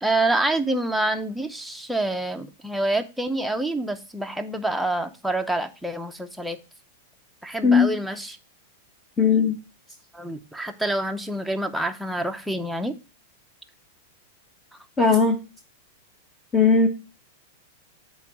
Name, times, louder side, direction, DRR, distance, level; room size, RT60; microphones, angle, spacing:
voice 1, 0.0-6.6 7.4-8.4 10.1-12.9, right 2 dB, ahead, 4 dB, 0.7 m, -27 dB
voice 2, 9.2-9.6 15.0-15.4 16.5-16.9, left 5 dB, 20° left, 3 dB, 1.0 m, -17 dB
8.2 x 3.1 x 6.0 m, 0.32 s
hypercardioid pair, 130°, 0 cm